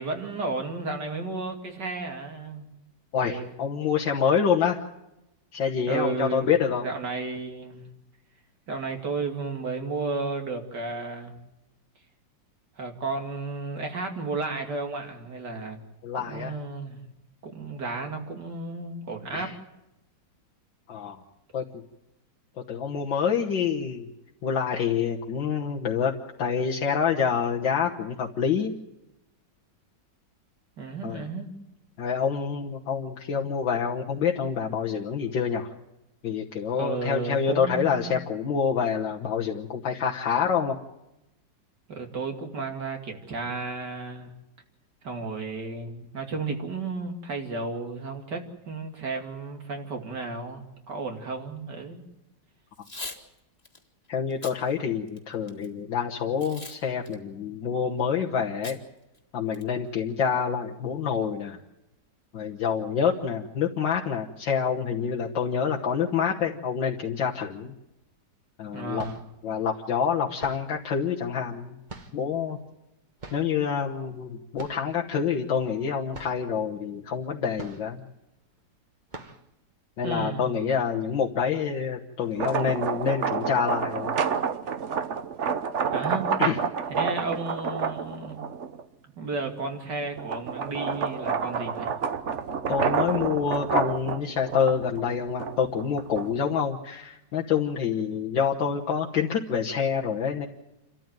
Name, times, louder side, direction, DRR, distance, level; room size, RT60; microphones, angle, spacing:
voice 1, 0.0-2.7 3.2-3.5 5.9-6.5 6.8-7.9 8.7-11.4 12.8-15.8 16.3-17.1 17.4-19.5 30.8-31.6 36.8-38.1 41.9-44.3 45.0-52.0 68.7-69.1 80.0-80.5 85.9-86.3 86.9-88.4 89.2-91.9, right 3 dB, 65° right, 4 dB, 3.1 m, -33 dB
voice 2, 3.1-4.8 5.5-6.9 16.0-16.6 19.3-19.5 20.9-21.2 21.5-21.8 22.6-24.1 24.4-28.7 31.0-31.3 32.0-35.7 36.2-40.8 54.1-58.8 59.3-61.6 62.3-67.7 68.6-69.1 69.4-71.8 72.1-72.6 73.3-78.1 80.0-84.1 86.4-86.6 92.7-100.5, left 7 dB, 80° left, -1 dB, 2.0 m, -27 dB
Packing tape duct tape / Tearing, 52.7-53.2 53.6-53.8 54.3-54.6 55.1-55.7 56.4-56.8 57.1-57.2 58.6-58.8 59.1-59.2 59.5-59.9, left 2 dB, 20° left, 2.0 m, -40 dB
sound 1, 68.0-68.1 68.8-69.4 70.4-70.8 71.9-72.4 73.2-73.6 74.5-75.0 75.3-75.4 75.8-75.9 76.1-76.5 77.5-78.1 78.5-78.6 79.1-79.5, right 3 dB, 25° right, 1.3 m, -43 dB
sound 2, 82.2-88.8 89.4-96.5, right 6 dB, 45° right, 1.1 m, -29 dB
28.0 x 13.5 x 9.1 m, 0.93 s
omnidirectional pair, 2.0 m